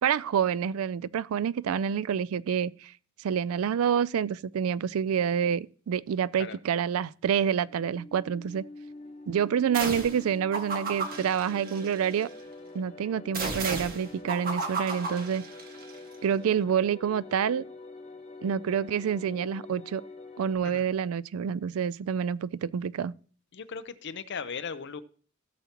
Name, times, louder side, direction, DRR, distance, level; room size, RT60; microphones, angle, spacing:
voice 1, 0.0-2.9 3.2-8.6 9.3-12.3 12.7-15.5 16.2-17.6 18.4-20.0 20.4-23.1, right 8 dB, 85° right, 0.4 m, -28 dB
sound 1, 7.5-20.5, left 2 dB, 30° left, 1.2 m, -46 dB
sound 2, 9.7-10.2 10.5-12.3 13.3-15.9, right 3 dB, 45° right, 1.7 m, -34 dB
voice 2, 23.5-25.0, left 6 dB, 60° left, 0.6 m, -38 dB
16.0 x 7.1 x 2.9 m
head